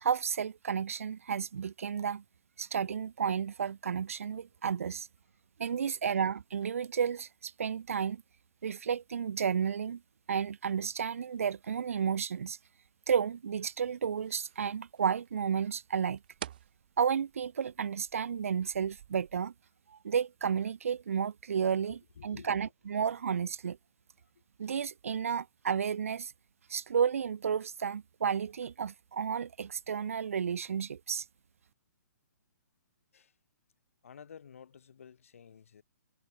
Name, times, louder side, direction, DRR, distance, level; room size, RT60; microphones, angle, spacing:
voice 1, 0.0-2.2 2.6-5.1 5.6-8.2 8.6-10.0 10.3-12.6 13.1-16.2 17.0-19.5 19.9-23.8 24.6-26.3 26.7-31.2, right 7 dB, 50° right, 1.0 m, -32 dB
sound 1, 14.1-19.4, right 11 dB, 30° right, 6.7 m, -51 dB
voice 2, 22.1-22.6 24.2-24.3 33.1-33.4 34.0-35.8, left 7 dB, 50° left, 6.1 m, -52 dB
hypercardioid pair, 180°, 10 cm